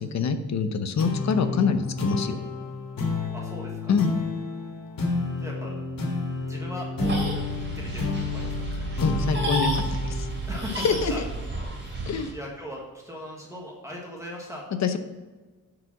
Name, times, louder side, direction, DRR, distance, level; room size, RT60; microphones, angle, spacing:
voice 1, 0.0-2.4 3.9-4.1 9.0-10.3 10.8-11.2 12.1-12.3 14.8-15.0, left 5 dB, 50° left, 9 dB, 0.9 m, -25 dB
sound 1, 1.0-11.8, left 3 dB, 70° left, 2.3 m, -31 dB
voice 2, 1.2-1.6 3.3-3.9 5.4-5.7 6.5-7.2 7.7-8.8 10.5-11.4 12.0-14.6, left 1 dB, 10° right, -3 dB, 1.5 m, -39 dB
sound 2, 7.0-12.3, right 2 dB, 30° right, 3.3 m, -31 dB
10.5 x 4.9 x 5.9 m, 1.3 s
wide cardioid pair, 155°, 35 cm